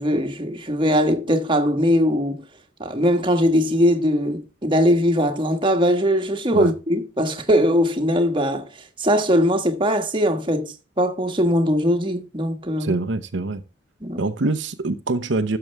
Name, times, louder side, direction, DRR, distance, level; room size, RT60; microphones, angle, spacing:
voice 1, 0.0-2.4 2.8-8.7 9.0-12.9 14.0-14.2, equal, 25° right, 1.4 m, -20 dB
voice 2, 12.8-13.6 14.2-15.6, right 3 dB, 75° right, 0.8 m, -24 dB
12.5 x 6.9 x 3.3 m
head